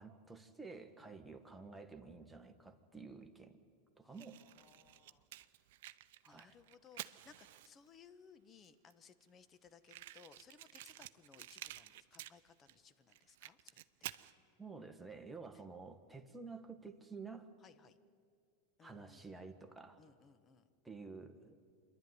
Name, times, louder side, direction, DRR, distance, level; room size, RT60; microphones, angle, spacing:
voice 1, 0.0-3.6 4.0-4.4 6.2-6.5 14.6-17.5 18.8-20.0 20.8-21.6, right 4 dB, 5° right, 5 dB, 1.4 m, -51 dB
voice 2, 4.0-5.3 6.3-14.1 15.5-15.6 17.6-18.0 18.8-19.4 20.0-20.7, left 6 dB, 30° left, 13 dB, 1.1 m, -63 dB
Fire, 4.1-8.0 8.6-8.7 8.9-9.0 9.2-9.3 9.8-12.8 13.1-14.3, right 15 dB, 70° right, 0.6 m, -51 dB
26.0 x 11.5 x 9.5 m, 2.3 s
hypercardioid pair, 110°, 0 cm